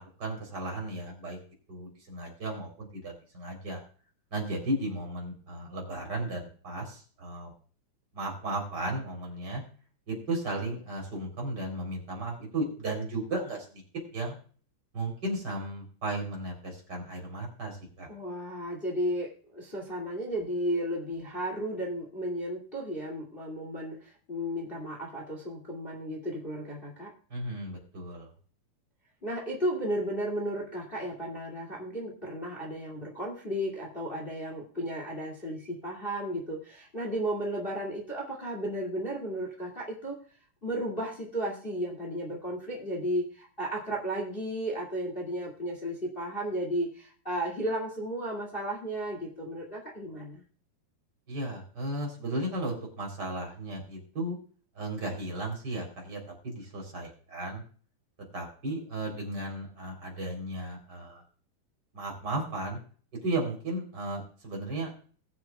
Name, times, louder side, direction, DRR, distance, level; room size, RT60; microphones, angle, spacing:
voice 1, 0.0-1.4 1.7-3.8 4.3-7.5 8.1-9.6 10.1-13.8 14.1-14.4 14.9-18.1 27.3-28.3 51.3-54.4 54.8-57.6 58.3-61.2 61.9-62.8 63.1-64.9, right 2 dB, 25° right, 0 dB, 3.8 m, -35 dB
voice 2, 18.1-27.1 29.2-40.2 40.6-50.4, right 1 dB, 20° left, 0 dB, 1.6 m, -34 dB
21.0 x 7.4 x 2.3 m, 0.42 s
omnidirectional pair, 4.6 m